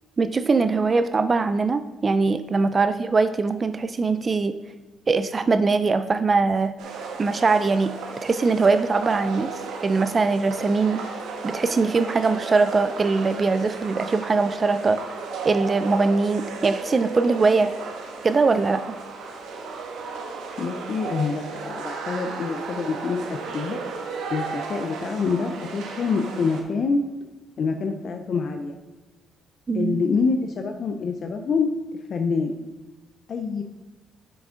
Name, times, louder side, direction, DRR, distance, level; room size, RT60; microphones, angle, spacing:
voice 1, 0.2-4.6 5.1-6.7 7.2-7.9 8.2-9.5 9.8-11.1 11.4-15.0 15.4-17.7 18.2-19.0 29.7-30.1, right 4 dB, 35° right, 11 dB, 0.4 m, -21 dB
sound 1, 6.8-26.6, right 4 dB, 90° right, 1.2 m, -35 dB
voice 2, 20.6-23.8 24.3-27.0 27.6-28.8 29.7-31.7 32.1-32.6 33.3-33.6, left 4 dB, 55° left, 5 dB, 0.6 m, -26 dB
7.8 x 6.1 x 3.8 m, 1.2 s
cardioid pair, 90°, 0 cm